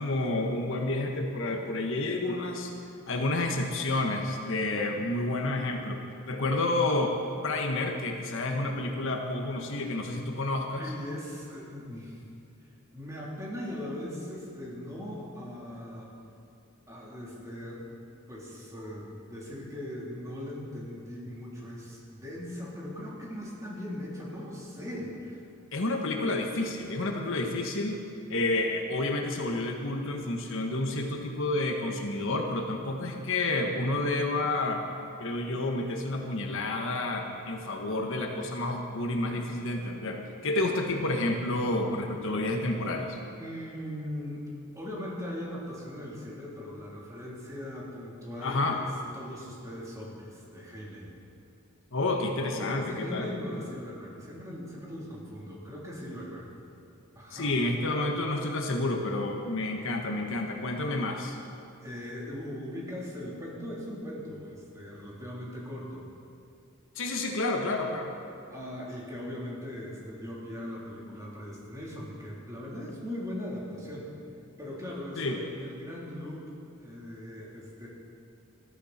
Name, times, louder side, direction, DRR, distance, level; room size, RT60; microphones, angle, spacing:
voice 1, 0.0-2.7 3.1-7.2 7.4-10.9 25.7-28.0 28.3-34.9 35.2-43.2 48.4-48.8 51.9-53.3 57.3-61.4 66.9-68.1 75.2-75.4, left 2 dB, 65° left, 2 dB, 1.4 m, -30 dB
voice 2, 10.7-12.2 12.6-12.7 12.9-16.1 16.9-18.0 18.3-25.4 43.4-44.4 44.7-51.2 52.4-56.5 57.1-57.5 61.8-66.0 68.5-74.1 74.6-76.4 76.8-77.9, left 1 dB, 15° right, -5 dB, 3.6 m, -39 dB
19.5 x 14.0 x 4.4 m, 2.6 s
head